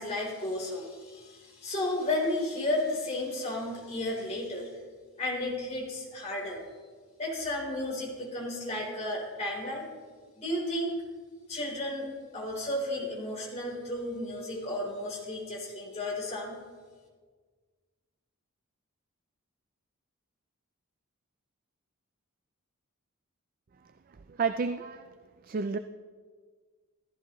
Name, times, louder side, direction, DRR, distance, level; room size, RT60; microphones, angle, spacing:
voice 1, 0.0-4.7 5.2-6.6 7.2-9.9 10.4-10.9 11.5-16.6, left 1 dB, 30° left, -4 dB, 3.9 m, -33 dB
voice 2, 24.3-25.1 25.4-25.8, right 5 dB, 40° right, 10 dB, 0.4 m, -30 dB
15.5 x 14.5 x 3.1 m, 1.5 s
head